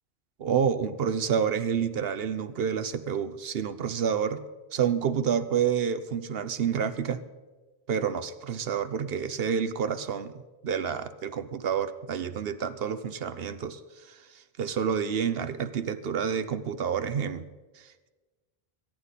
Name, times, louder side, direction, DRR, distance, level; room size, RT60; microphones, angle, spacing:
voice 1, 0.4-4.4 4.7-7.2 7.9-10.3 10.6-17.4 17.8-18.1, right 7 dB, 65° right, 12 dB, 0.9 m, -29 dB
23.0 x 9.6 x 4.1 m, 1.3 s
omnidirectional pair, 1.1 m